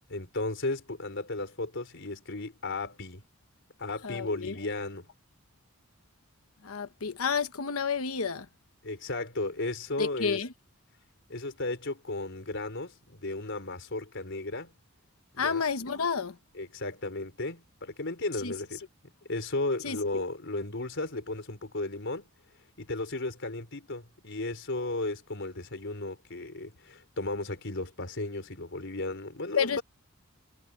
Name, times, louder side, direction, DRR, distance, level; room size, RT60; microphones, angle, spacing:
voice 1, 0.1-3.2 3.8-5.1 8.8-10.4 11.3-14.7 15.3-15.6 16.6-18.8 19.3-22.2 22.8-29.8, left 2 dB, 60° left, 4.2 m, -34 dB
voice 2, 4.0-4.6 6.6-8.5 10.0-10.5 15.4-16.4 18.4-18.5 19.8-20.0 29.6-29.8, left 6 dB, 85° left, 1.1 m, -30 dB
head